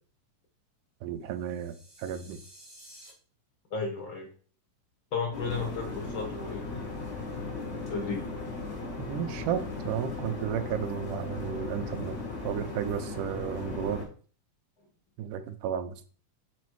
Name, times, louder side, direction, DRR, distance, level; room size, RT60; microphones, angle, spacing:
voice 1, 1.0-2.4 9.0-12.2 12.4-14.0 15.2-16.1, right 9 dB, 85° right, 9 dB, 2.2 m, -33 dB
sound 1, 1.3-3.1, right 1 dB, 30° right, 0.4 m, -53 dB
voice 2, 3.7-4.3 5.1-6.6 7.9-8.3, left 4 dB, 60° left, 1 dB, 1.3 m, -33 dB
sound 2, 5.3-14.0, left 3 dB, 40° left, 1.0 m, -37 dB
5.0 x 4.2 x 4.6 m, 0.41 s
omnidirectional pair, 3.6 m